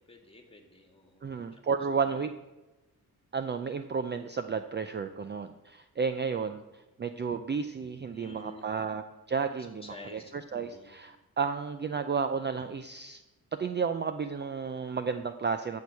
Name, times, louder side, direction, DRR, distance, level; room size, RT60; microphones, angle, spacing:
voice 1, 0.1-1.2 2.0-2.1 8.1-8.7 9.8-10.9, left 2 dB, 15° left, 4 dB, 2.0 m, -49 dB
voice 2, 1.2-2.3 3.3-13.2 13.5-15.8, right 5 dB, 30° right, 9 dB, 0.5 m, -32 dB
12.5 x 4.6 x 8.3 m, 1.0 s
cardioid pair, 115°, 38 cm